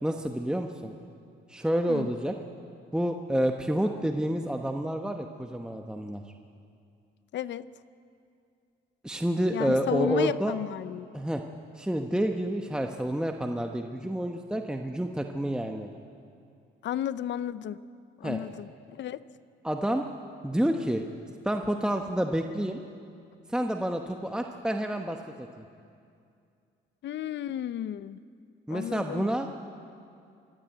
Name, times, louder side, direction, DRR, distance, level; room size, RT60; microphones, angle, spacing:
voice 1, 0.0-0.9 1.5-2.3 2.9-6.2 9.0-10.6 11.1-11.4 11.7-15.9 18.2-18.4 19.6-20.0 20.4-21.0 21.4-22.8 23.5-25.6 28.7-29.5, right 1 dB, 5° right, 4 dB, 1.0 m, -29 dB
voice 2, 7.3-7.7 9.5-11.1 16.8-17.8 18.2-19.2 27.0-28.2 28.7-29.3, left 11 dB, 65° left, 16 dB, 0.6 m, -33 dB
24.0 x 13.5 x 8.9 m, 2.4 s
cardioid pair, 90°, 20 cm